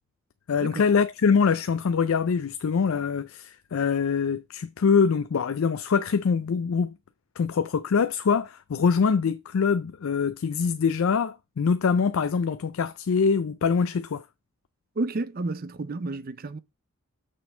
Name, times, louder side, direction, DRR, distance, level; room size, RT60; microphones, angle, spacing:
voice 1, 0.5-6.9 7.4-14.2, left 5 dB, 70° left, 0.4 m, -24 dB
voice 2, 15.0-16.6, right 2 dB, 40° right, 0.5 m, -31 dB
6.3 x 4.3 x 5.4 m
head